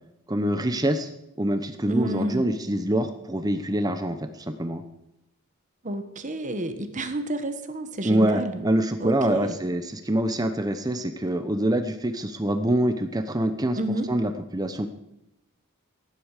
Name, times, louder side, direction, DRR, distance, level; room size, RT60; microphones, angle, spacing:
voice 1, 0.3-1.1 1.4-4.8 8.0-13.8 14.1-14.9, right 1 dB, 20° right, 8 dB, 1.0 m, -25 dB
voice 2, 1.8-2.4 5.8-8.7 9.0-9.6 13.8-14.1, right 1 dB, 35° right, 8 dB, 1.3 m, -30 dB
16.0 x 11.5 x 6.7 m, 0.86 s
head